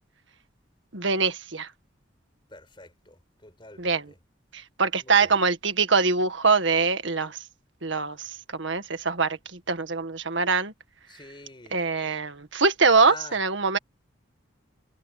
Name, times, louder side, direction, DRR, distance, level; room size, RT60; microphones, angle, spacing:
voice 1, 0.9-1.7 3.8-4.1 4.5-7.4 7.8-8.2 8.5-9.4 9.7-10.7 11.7-13.8, right 4 dB, 70° right, 1.8 m, -23 dB
voice 2, 2.5-4.2 5.0-5.3 11.1-11.8 13.0-13.4, left 3 dB, 25° left, 4.7 m, -46 dB
head